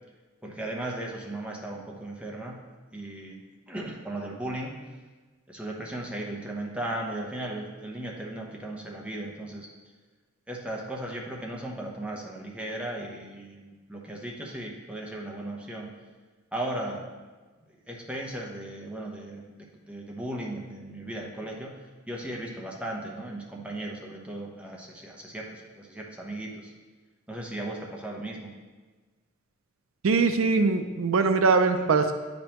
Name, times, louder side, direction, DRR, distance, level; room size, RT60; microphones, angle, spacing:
voice 1, 0.4-2.6 2.9-3.4 3.7-4.8 5.5-9.7 10.5-15.9 16.5-17.1 17.9-26.7 27.3-28.5 31.7-31.8, right 1 dB, 5° right, -1 dB, 1.0 m, -36 dB
voice 2, 30.0-32.1, right 4 dB, 80° right, 8 dB, 0.5 m, -22 dB
9.6 x 5.2 x 3.0 m, 1.3 s
head